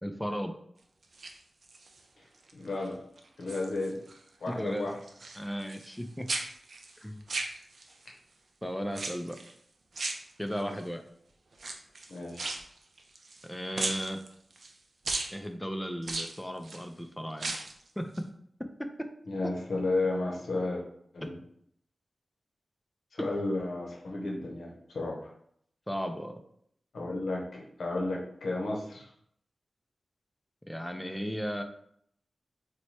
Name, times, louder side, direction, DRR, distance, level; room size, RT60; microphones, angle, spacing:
voice 1, 0.0-0.5 4.5-4.9 5.4-6.3 7.0-7.3 8.6-9.4 10.4-11.0 13.4-14.2 15.3-17.5 18.0-18.3 18.6-19.1 19.4-19.5 21.2-21.3 23.2-23.5 25.9-26.4 30.7-31.6, equal, 5° left, 6 dB, 0.3 m, -35 dB
sound 1, 1.0-2.0 2.5-2.9 3.2-4.2 4.5-6.0 6.3-8.1 8.9-9.5 9.9-10.8 11.5-13.5 13.8-14.7 15.1-15.3 16.0-16.8 17.3-17.8 18.1-18.2, right 3 dB, 65° right, 0.5 m, -37 dB
voice 2, 2.5-3.0 3.4-4.0 4.4-5.0 10.6-10.8 12.1-12.5 19.3-20.8 21.1-21.4 23.1-25.3 26.9-29.1, left 2 dB, 90° left, -1 dB, 0.7 m, -33 dB
3.0 x 2.2 x 4.1 m, 0.67 s
wide cardioid pair, 90°, 0 cm